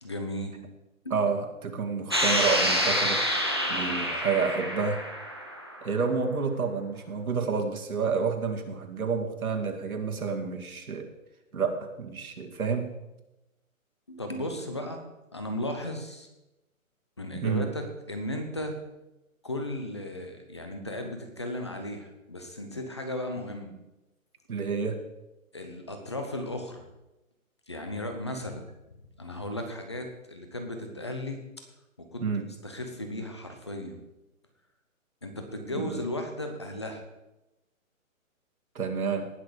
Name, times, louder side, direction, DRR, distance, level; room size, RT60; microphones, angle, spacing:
voice 1, 0.0-0.6 14.1-15.0 15.3-16.3 17.2-18.8 19.4-23.7 25.5-26.8 27.7-28.7 29.2-31.4 32.1-32.2 32.6-34.0 35.2-37.0, left 1 dB, 20° left, 5 dB, 0.8 m, -35 dB
voice 2, 1.1-3.2 3.7-5.0 5.8-11.1 11.5-12.9 17.3-17.7 24.5-25.0 32.2-32.5 35.8-36.0 38.7-39.3, right 5 dB, 80° right, 3 dB, 2.3 m, -29 dB
sound 1, 2.1-5.9, equal, 20° right, 0.6 m, -27 dB
18.5 x 6.5 x 5.1 m, 0.96 s
hypercardioid pair, 180°, 42 cm